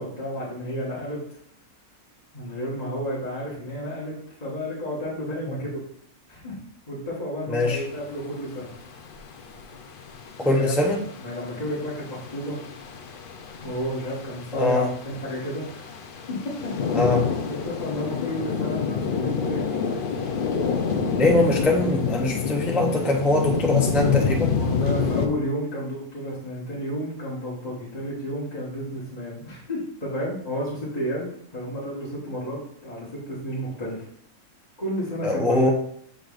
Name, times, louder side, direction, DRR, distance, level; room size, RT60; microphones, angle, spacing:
voice 1, 0.0-1.4 2.3-5.7 6.3-6.6 6.9-8.7 10.4-10.7 11.0-12.6 13.6-15.9 16.3-16.7 17.5-20.0 24.5-34.1 34.8-35.7, equal, 30° left, -8 dB, 1.5 m, -31 dB
voice 2, 7.5-7.8 10.4-11.0 14.5-14.9 16.9-17.3 21.1-24.5 35.2-35.7, left 2 dB, ahead, 0 dB, 0.3 m, -22 dB
sound 1, 7.7-25.3, left 6 dB, 60° left, 0.5 m, -28 dB
7.5 x 5.2 x 2.5 m, 0.67 s
omnidirectional pair, 1.6 m